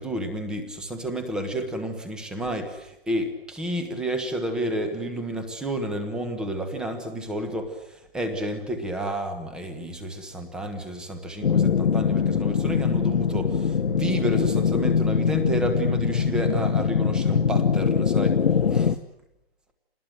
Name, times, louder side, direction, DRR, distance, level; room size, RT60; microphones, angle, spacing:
voice 1, 0.0-18.4 18.7-18.9, right 1 dB, ahead, 7 dB, 1.2 m, -30 dB
sound 1, 11.4-18.9, left 6 dB, 85° left, 1.4 m, -22 dB
28.5 x 20.0 x 9.1 m, 0.90 s
hypercardioid pair, 175°, 31 cm